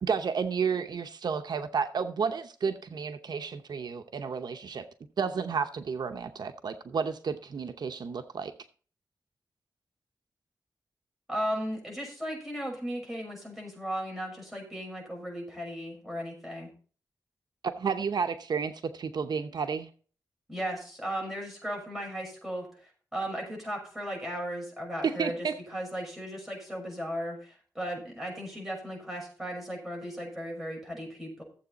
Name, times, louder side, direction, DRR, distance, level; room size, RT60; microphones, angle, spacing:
voice 1, 0.0-4.9 5.2-8.5 17.6-19.9 25.0-25.6, right 6 dB, 75° right, 0.8 m, -31 dB
voice 2, 11.3-16.7 20.5-31.4, equal, 5° right, 6.1 m, -36 dB
14.5 x 7.8 x 4.0 m
wide cardioid pair, 120°, 7 cm